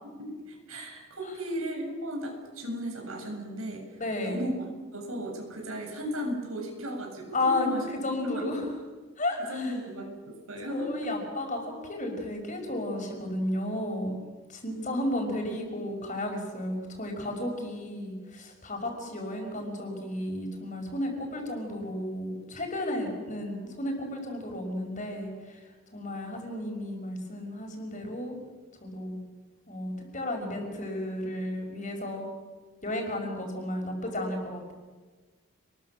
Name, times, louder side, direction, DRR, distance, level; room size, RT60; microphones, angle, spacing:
voice 1, 0.1-4.0 4.2-7.9 8.2-8.6 9.5-11.1, equal, 90° right, 2 dB, 7.9 m, -35 dB
voice 2, 4.0-4.4 7.3-8.6 9.2-9.7 10.7-14.2 14.5-25.6 25.9-28.4 28.8-29.2 29.7-32.3 32.8-34.7, left 1 dB, 35° left, 3 dB, 5.9 m, -33 dB
28.5 x 22.0 x 7.5 m, 1.4 s
head